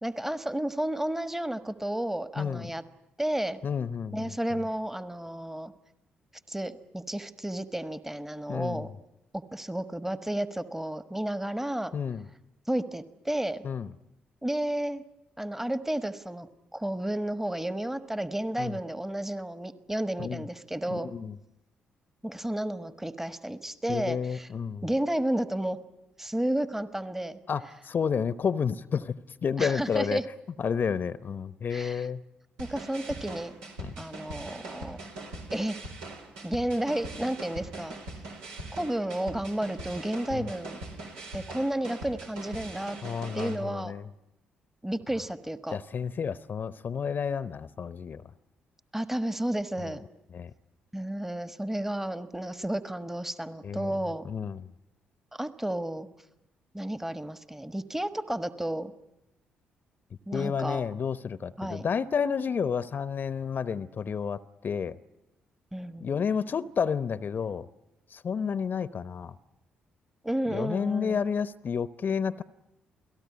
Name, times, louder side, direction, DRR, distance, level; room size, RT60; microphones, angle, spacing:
voice 1, 0.0-2.8 3.2-3.6 4.1-5.7 6.5-8.9 9.3-12.0 12.7-13.7 14.4-15.0 15.4-21.1 22.2-24.5 24.8-25.8 26.2-27.4 29.6-30.3 31.7-32.1 32.6-33.6 34.0-35.0 35.5-35.8 36.4-38.0 38.7-40.8 41.3-43.0 43.3-43.9 44.8-45.8 48.9-50.1 50.9-54.2 55.3-56.1 56.7-58.9 60.3-60.9 61.6-61.9 65.7-66.2 70.2-71.2, right 1 dB, 10° right, 1.4 m, -32 dB
voice 2, 2.4-2.7 3.6-4.4 8.5-8.9 11.9-12.2 13.6-13.9 18.6-18.8 20.2-20.4 20.9-21.4 23.9-24.9 27.5-29.1 29.4-30.2 30.6-32.2 33.8-33.9 40.3-40.5 43.0-44.0 45.7-48.2 50.3-50.5 53.6-53.9 54.2-54.7 60.3-65.0 66.0-67.7 68.1-69.4 70.5-72.4, left 6 dB, 50° left, 0.9 m, -30 dB
sound 1, 32.6-43.5, right 2 dB, 85° right, 4.1 m, -42 dB
29.0 x 18.0 x 9.6 m
hypercardioid pair, 45°, 4 cm